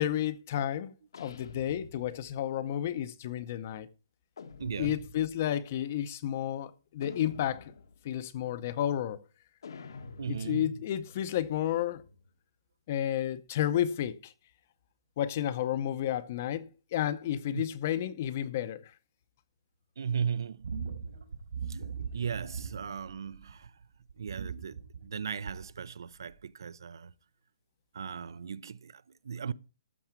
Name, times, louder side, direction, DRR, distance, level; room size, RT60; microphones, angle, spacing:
voice 1, 0.0-3.9 4.8-7.7 8.0-9.2 10.2-12.0 12.9-14.3 15.2-18.9, left 11 dB, 30° left, 0.6 m, -31 dB
sound 1, 1.1-2.4 4.4-5.4 7.0-8.1 9.6-12.3, left 4 dB, 70° left, 1.3 m, -48 dB
voice 2, 4.6-5.0 10.2-10.8 17.5-17.6 20.0-20.7 21.7-21.8 22.1-23.7 24.2-27.1 27.9-29.5, right 7 dB, 70° right, 0.5 m, -37 dB
sound 2, 20.6-23.7 24.1-25.8 26.3-26.4, right 6 dB, 85° right, 5.0 m, -39 dB
13.5 x 5.9 x 4.5 m
hypercardioid pair, 180°, 2 cm